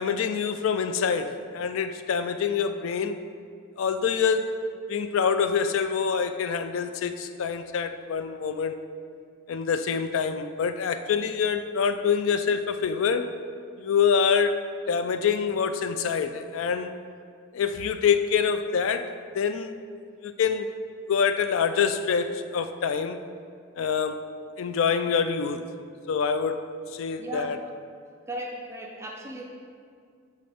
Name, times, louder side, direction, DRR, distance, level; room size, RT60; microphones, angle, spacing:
voice 1, 0.0-3.2 3.8-4.6 4.9-8.8 9.5-13.3 13.8-14.6 14.9-16.9 17.5-19.7 20.2-20.7 21.1-23.2 23.8-24.2 24.6-25.6 26.1-27.6, left 6 dB, 75° left, 10 dB, 0.3 m, -26 dB
voice 2, 27.2-27.6 28.3-29.4, right 1 dB, 15° right, -1 dB, 0.4 m, -36 dB
7.6 x 3.7 x 3.4 m, 2.1 s
head